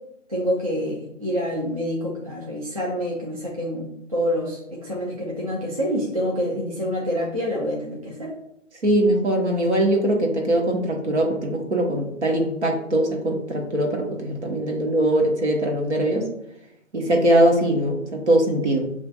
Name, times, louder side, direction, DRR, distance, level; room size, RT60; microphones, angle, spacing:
voice 1, 0.3-8.3, equal, 30° right, -3 dB, 0.4 m, -27 dB
voice 2, 8.8-16.2 16.9-18.9, right 1 dB, 65° right, 1 dB, 1.1 m, -21 dB
6.8 x 2.5 x 2.3 m, 0.78 s
figure-of-eight pair, 150°, 38 cm